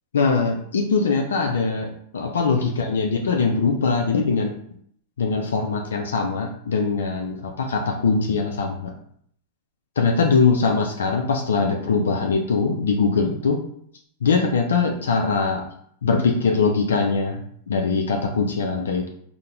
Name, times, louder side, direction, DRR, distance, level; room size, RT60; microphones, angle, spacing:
voice 1, 0.1-4.5 5.2-8.9 10.0-13.6 14.2-15.6 16.0-17.4 17.7-19.1, left 4 dB, 90° left, 2 dB, 0.4 m, -22 dB
3.6 x 2.1 x 2.8 m, 0.66 s
hypercardioid pair, 115°, 0 cm